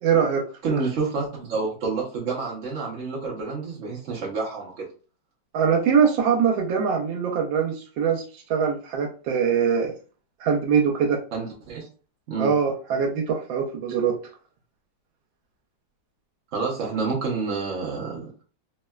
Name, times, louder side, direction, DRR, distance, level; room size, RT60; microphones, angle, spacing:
voice 1, 0.0-0.4 5.5-9.9 10.4-11.2 12.4-14.2, right 7 dB, 80° right, 1 dB, 1.3 m, -22 dB
voice 2, 0.6-4.9 11.3-11.9 12.3-12.5 16.5-18.2, right 4 dB, 65° right, -3 dB, 0.7 m, -28 dB
3.5 x 2.1 x 2.2 m, 0.37 s
omnidirectional pair, 2.1 m